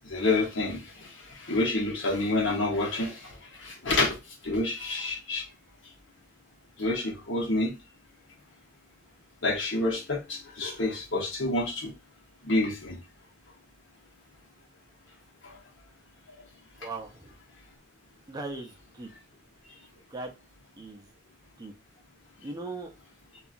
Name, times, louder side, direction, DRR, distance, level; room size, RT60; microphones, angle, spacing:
voice 1, 0.0-1.1 1.4-3.3 3.6-4.2 4.4-5.4 6.8-7.7 9.4-11.9 12.4-13.0, left 2 dB, 70° left, 1.0 m, -28 dB
voice 2, 16.8-17.3 18.3-19.1 20.1-20.3 20.8-21.1 21.6-21.7 22.4-22.9, right 3 dB, 20° right, 0.4 m, -38 dB
2.8 x 2.3 x 2.5 m
head